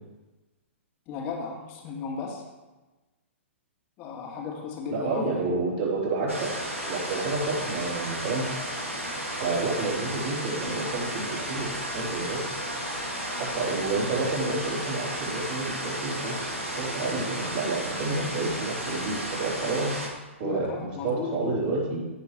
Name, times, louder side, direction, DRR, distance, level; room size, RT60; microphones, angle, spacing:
voice 1, 1.1-2.5 4.0-5.4 20.4-21.7, left 5 dB, 30° left, 0 dB, 2.2 m, -35 dB
voice 2, 4.9-8.5 9.4-12.4 13.3-19.9 20.4-22.1, right 3 dB, 45° right, -6 dB, 3.8 m, -30 dB
sound 1, 6.3-20.1, right 1 dB, 80° right, 2.4 m, -33 dB
16.0 x 6.6 x 3.3 m, 1.1 s
figure-of-eight pair, 115°, 7 cm